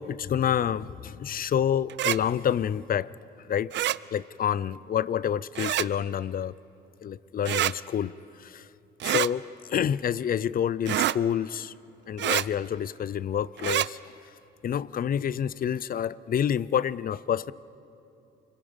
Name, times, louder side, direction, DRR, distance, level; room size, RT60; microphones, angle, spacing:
voice 1, 0.0-3.1 3.5-6.5 7.0-8.7 9.0-11.7 12.1-14.0 14.6-17.5, left 9 dB, 45° left, 20 dB, 0.5 m, -28 dB
sound 1, 1.9-2.2 3.7-4.0 5.6-5.9 7.5-7.7 9.0-9.3 10.9-11.2 12.2-12.5 13.6-13.9, right 13 dB, 65° right, 0.5 m, -26 dB
29.0 x 21.5 x 5.3 m, 3.0 s
cardioid pair, 90°, 20 cm